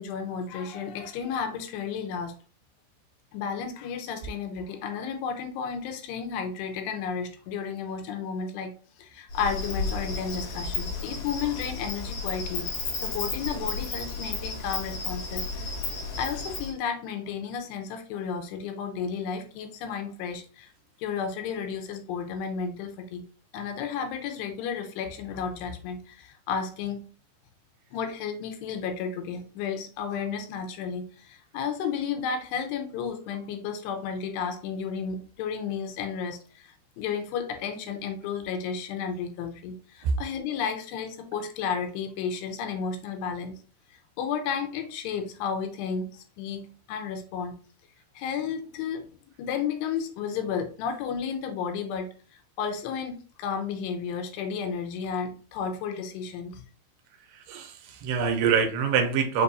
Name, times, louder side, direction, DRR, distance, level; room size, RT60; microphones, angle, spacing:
voice 1, 0.0-2.4 3.3-8.7 9.0-12.7 13.0-15.6 16.2-20.7 21.0-23.2 23.5-27.0 27.9-43.6 44.2-47.6 48.2-49.1 49.4-52.1 52.6-56.6, left 6 dB, 85° left, 5 dB, 2.8 m, -32 dB
Insect, 9.3-16.7, left 3 dB, 55° left, 3.2 m, -33 dB
voice 2, 57.3-59.4, right 6 dB, 80° right, 6 dB, 2.6 m, -25 dB
6.6 x 2.7 x 2.5 m, 0.40 s
omnidirectional pair, 4.8 m